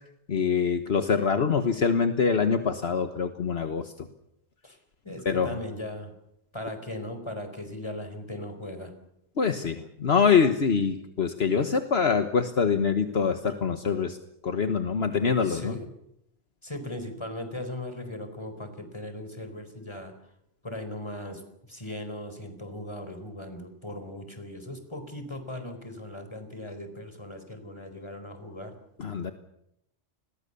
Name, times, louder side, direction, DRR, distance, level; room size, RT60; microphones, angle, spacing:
voice 1, 0.3-3.9 5.2-5.6 9.4-14.2 14.4-15.8 29.0-29.3, left 6 dB, 65° left, 8 dB, 1.5 m, -24 dB
voice 2, 5.0-6.1 6.5-8.9 15.4-15.9 16.6-20.1 20.6-21.4 21.7-28.7, left 1 dB, 25° left, 8 dB, 4.3 m, -38 dB
30.0 x 21.5 x 6.9 m, 0.80 s
omnidirectional pair, 1.2 m